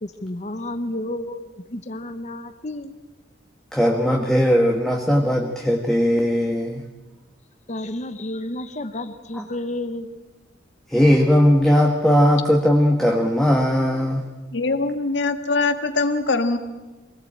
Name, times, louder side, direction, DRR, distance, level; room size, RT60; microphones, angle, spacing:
voice 1, 0.0-3.0 7.7-10.1, left 1 dB, 40° left, 10 dB, 1.0 m, -31 dB
voice 2, 3.7-6.8 9.4-9.5 10.9-14.2, equal, ahead, 0 dB, 1.4 m, -18 dB
voice 3, 14.5-16.6, left 3 dB, 65° left, 9 dB, 1.7 m, -22 dB
24.5 x 18.0 x 8.7 m, 1.2 s
head